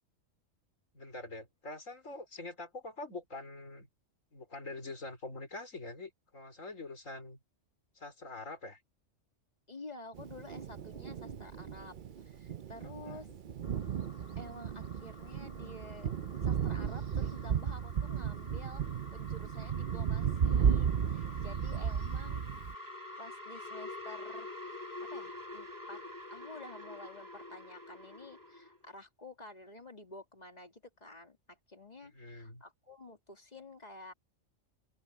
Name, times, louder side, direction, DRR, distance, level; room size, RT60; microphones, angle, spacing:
voice 1, 0.9-3.9 4.3-7.4 7.9-8.8 12.8-13.3 32.0-32.6, left 2 dB, 85° left, 4.8 m, -45 dB
voice 2, 9.7-13.3 14.4-16.1 16.4-18.8 19.1-22.4 23.2-24.5 25.0-26.0 26.3-34.1, left 2 dB, 35° left, 2.5 m, -50 dB
Thunder, 10.1-22.7, right 7 dB, 50° right, 0.7 m, -34 dB
sound 1, 13.6-28.8, left 2 dB, 35° right, 3.7 m, -48 dB
open air
omnidirectional pair, 1.3 m